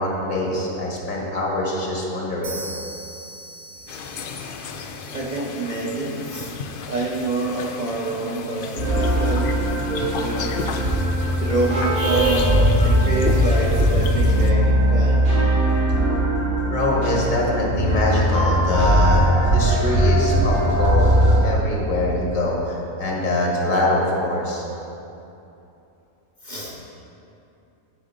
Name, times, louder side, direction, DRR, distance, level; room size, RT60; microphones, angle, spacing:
voice 1, 0.0-2.6 16.7-21.1 21.4-24.7, left 2 dB, 70° left, -3 dB, 1.8 m, -24 dB
sound 1, 2.4-6.2, right 3 dB, 65° right, 1.4 m, -40 dB
sound 2, 3.9-14.5, left 5 dB, 85° left, 0.4 m, -34 dB
voice 2, 5.1-10.7 11.4-15.3 26.4-26.8, right 2 dB, 45° right, -4 dB, 0.7 m, -27 dB
sound 3, 8.8-21.4, equal, 80° right, 2.7 m, -19 dB
9.3 x 4.8 x 5.2 m, 2.8 s
omnidirectional pair, 1.5 m